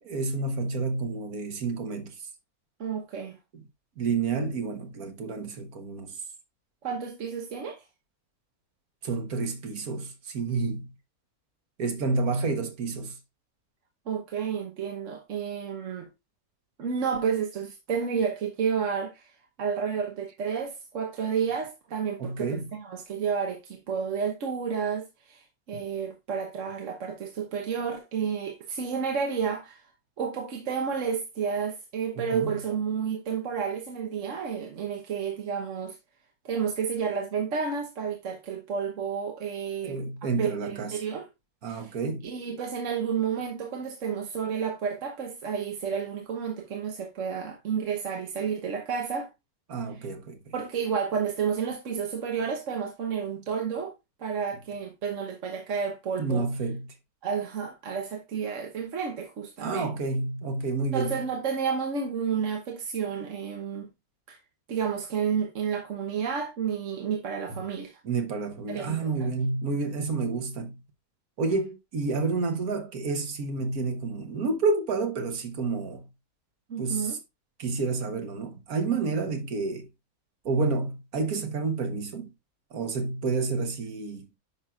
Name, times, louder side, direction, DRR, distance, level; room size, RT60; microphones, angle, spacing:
voice 1, 0.0-2.1 3.5-3.6 4.0-6.2 9.0-10.9 11.8-13.2 22.2-22.7 32.2-32.5 39.8-40.9 41.6-42.3 49.7-50.5 56.2-56.9 59.6-61.2 68.0-70.8 71.4-76.0 76.8-77.2 77.6-79.9 80.4-82.3 82.7-84.2, right 4 dB, 80° right, 1.7 m, -29 dB
voice 2, 2.8-3.4 6.8-7.8 14.1-16.1 16.8-19.3 19.6-29.8 30.2-36.0 36.4-41.3 41.7-41.9 42.2-49.3 49.9-50.1 50.5-53.9 54.2-56.5 57.2-59.9 60.9-63.9 64.3-64.4 64.7-67.9 68.7-69.3 76.7-77.1, right 6 dB, 60° right, 1.3 m, -31 dB
9.7 x 5.8 x 2.4 m
omnidirectional pair, 1.5 m